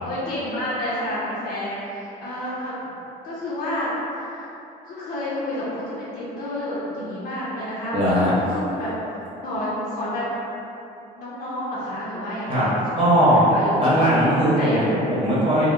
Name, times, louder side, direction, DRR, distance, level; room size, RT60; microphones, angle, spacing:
voice 1, 0.0-2.7 3.2-4.5 4.8-8.0 8.5-8.9 9.4-10.3 11.2-13.8 14.3-14.9, left 1 dB, 55° left, -9 dB, 0.7 m, -30 dB
voice 2, 7.9-8.5 12.5-12.7 13.0-13.4 13.8-15.7, equal, 30° right, -9 dB, 1.0 m, -19 dB
2.6 x 2.0 x 3.6 m, 2.9 s
cardioid pair, 110°, 17 cm